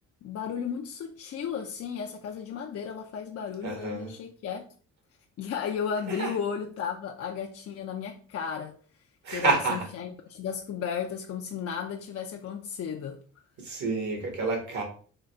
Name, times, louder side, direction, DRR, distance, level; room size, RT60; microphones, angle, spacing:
voice 1, 0.2-4.7 5.4-8.8 9.3-13.2, left 7 dB, 55° left, 0.5 m, -34 dB
voice 2, 3.6-4.1 6.1-6.4 9.2-9.9 13.6-14.8, right 3 dB, 70° right, 1.6 m, -29 dB
3.9 x 2.3 x 4.4 m
cardioid pair, 90°, 30 cm